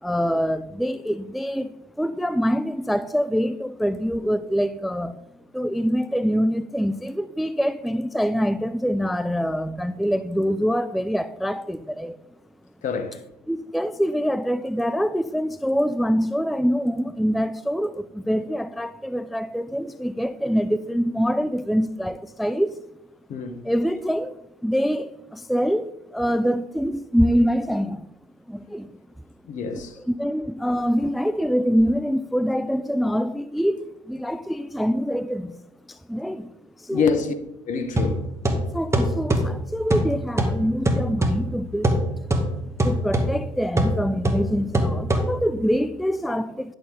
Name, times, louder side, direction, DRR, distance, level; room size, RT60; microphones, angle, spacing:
voice 1, 0.0-5.2 5.5-12.2 13.5-22.8 23.6-28.1 28.5-28.9 30.1-35.6 35.9-36.5 36.8-37.0 38.7-42.0 42.8-46.7, equal, ahead, 0.4 m, -25 dB
voice 2, 12.8-13.2 23.3-23.6 29.4-30.0 36.9-37.3 37.7-38.3, left 5 dB, 50° left, 1.4 m, -26 dB
sound 1, 38.0-45.7, right 1 dB, 15° right, 2.0 m, -24 dB
10.5 x 7.0 x 3.9 m
hypercardioid pair, 60°, 16 cm